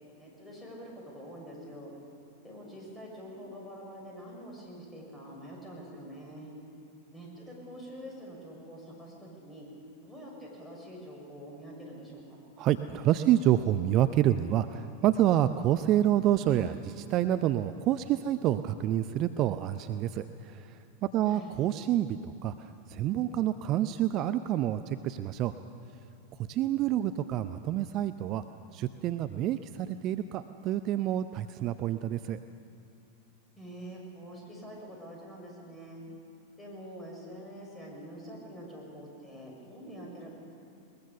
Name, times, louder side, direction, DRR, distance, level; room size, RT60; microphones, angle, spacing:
voice 1, 0.2-1.9 2.4-6.5 7.1-9.7 10.0-12.4 21.3-21.5 33.6-36.0 36.6-40.3, equal, 10° left, -2 dB, 6.4 m, -45 dB
voice 2, 12.6-20.8 21.1-25.5 26.4-28.4 28.7-32.4, right 12 dB, 35° right, 11 dB, 0.6 m, -28 dB
21.5 x 20.5 x 6.9 m, 2.5 s
figure-of-eight pair, 90°, 0 cm